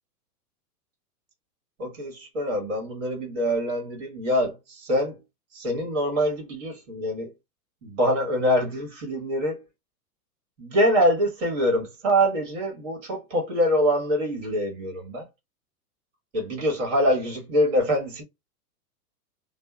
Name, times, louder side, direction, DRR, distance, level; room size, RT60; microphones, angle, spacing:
voice 1, 1.8-5.2 5.5-7.3 7.8-9.6 10.6-15.3 16.3-18.2, equal, 50° right, 1.6 m, -24 dB
2.7 x 2.3 x 2.2 m
supercardioid pair, 170°, 47 cm